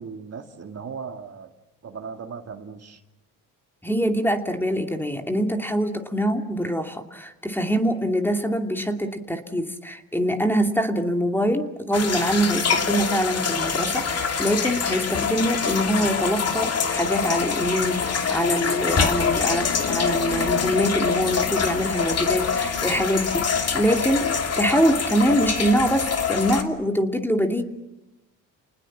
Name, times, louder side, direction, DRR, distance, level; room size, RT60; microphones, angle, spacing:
voice 1, 0.0-1.5 1.8-3.0, right 5 dB, 45° right, 5 dB, 2.2 m, -37 dB
voice 2, 3.8-27.6, equal, 5° left, 4 dB, 2.7 m, -24 dB
sound 1, 11.9-26.6, left 6 dB, 45° left, 2.8 m, -25 dB
30.0 x 19.5 x 7.4 m, 0.97 s
cardioid pair, 90°, 36 cm